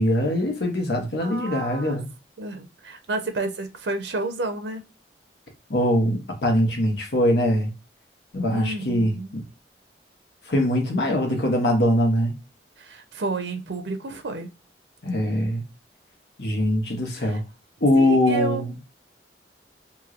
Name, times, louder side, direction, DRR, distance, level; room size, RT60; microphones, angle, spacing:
voice 1, 0.0-2.1 5.7-7.7 8.3-9.4 10.5-12.3 15.0-15.6 16.4-17.4 17.8-18.7, left 1 dB, 75° left, 1.2 m, -22 dB
voice 2, 1.2-2.0 2.4-4.8 8.5-9.3 12.8-14.5 17.1-17.4 18.0-18.8, right 2 dB, 85° right, 0.6 m, -31 dB
3.1 x 2.6 x 2.4 m
head